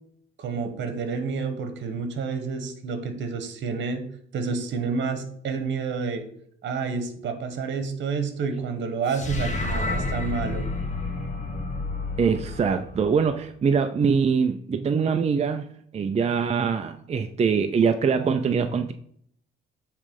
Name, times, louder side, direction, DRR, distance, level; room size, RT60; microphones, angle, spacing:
voice 1, 0.4-4.0 4.3-6.2 6.6-10.6, right 5 dB, 65° right, 7 dB, 1.2 m, -29 dB
sound 1, 9.1-13.5, left 2 dB, 35° left, 1.3 m, -30 dB
voice 2, 12.2-15.7 15.9-18.9, right 6 dB, 35° right, 7 dB, 0.5 m, -23 dB
8.7 x 3.3 x 5.3 m, 0.65 s
cardioid pair, 90°, 20 cm